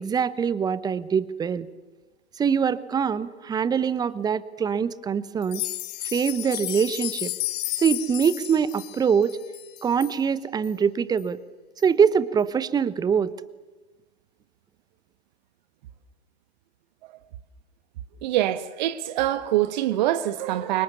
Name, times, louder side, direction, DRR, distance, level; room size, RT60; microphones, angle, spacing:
voice 1, 0.0-1.7 2.4-5.6 6.1-7.3 7.8-9.4 9.8-11.4 11.8-13.3, right 7 dB, 10° right, 0.9 m, -23 dB
sound 1, 5.4-10.2 10.6-10.7 11.2-11.3 11.8-11.9, left 18 dB, 35° left, 1.5 m, -32 dB
voice 2, 18.2-20.8, right 13 dB, 45° right, 1.4 m, -24 dB
29.0 x 25.5 x 7.2 m
figure-of-eight pair, 105°, 32 cm